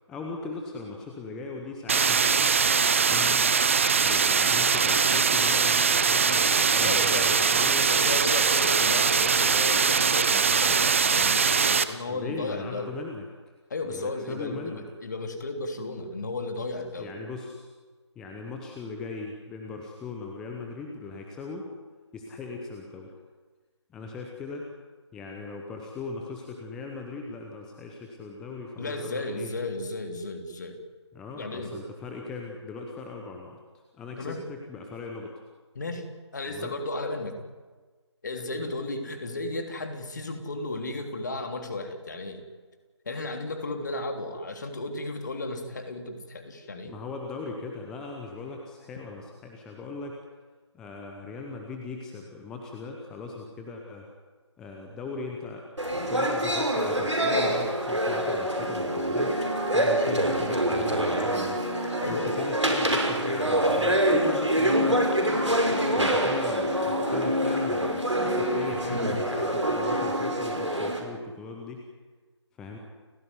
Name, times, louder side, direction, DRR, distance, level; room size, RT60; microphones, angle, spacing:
voice 1, 0.1-2.6 3.0-3.5 4.0-7.9 12.1-13.2 13.8-14.8 17.0-17.7 18.1-21.7 22.1-23.1 23.9-24.7 25.1-29.5 31.1-35.3 36.5-36.7 46.9-50.2 50.7-54.1 54.6-59.4 59.7-61.7 62.1-65.4 65.9-71.8 72.6-72.8, left 4 dB, 5° left, 2 dB, 0.9 m, -39 dB
sound 1, 1.9-11.8, right 5 dB, 25° right, 0.9 m, -22 dB
voice 2, 6.8-7.6 7.9-12.9 13.7-17.1 28.8-30.8 31.4-31.7 34.2-34.4 35.7-37.3 38.2-42.4 43.0-47.0 62.0-62.4, left 2 dB, 40° left, 6 dB, 3.2 m, -34 dB
sound 2, 55.8-71.0, right 1 dB, 80° right, 6.2 m, -25 dB
29.5 x 15.5 x 9.5 m, 1.4 s
figure-of-eight pair, 155°, 15 cm